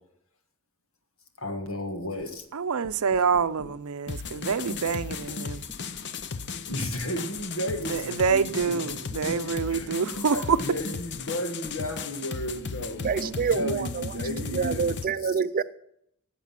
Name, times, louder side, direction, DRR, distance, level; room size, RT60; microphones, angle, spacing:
voice 1, 1.4-2.4 3.6-3.7 6.7-9.9 10.3-15.3, equal, 80° left, 1.8 m, -34 dB
sound 1, 2.2-2.4 2.8-3.7 4.1-5.4 5.7-6.3 6.7-8.3 8.6-11.3 11.6-11.8 12.4-12.8, left 1 dB, 30° left, 1.2 m, -48 dB
voice 2, 2.5-5.6 7.9-10.6, right 5 dB, 85° right, 0.6 m, -26 dB
sound 2, 4.1-15.1, left 5 dB, 55° left, 0.7 m, -36 dB
voice 3, 13.0-15.6, right 5 dB, 40° right, 0.4 m, -27 dB
14.5 x 8.3 x 5.9 m
head